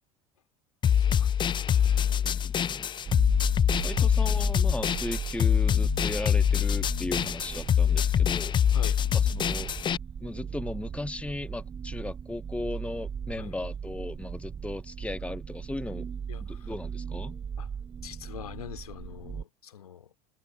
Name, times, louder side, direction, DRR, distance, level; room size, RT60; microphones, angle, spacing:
sound 1, 0.8-10.0, left 8 dB, 25° left, 0.6 m, -24 dB
voice 1, 1.0-2.3 4.0-4.1 8.7-9.0 13.4-13.5 16.3-16.7 17.6-17.7 18.0-20.1, left 9 dB, 75° left, 3.0 m, -44 dB
voice 2, 2.1-2.9 3.8-8.5 9.3-9.7 10.2-16.1 16.4-17.4, left 2 dB, 5° left, 1.7 m, -37 dB
sound 2, 3.1-19.4, right 7 dB, 25° right, 1.3 m, -37 dB
figure-of-eight pair, 70°, 19 cm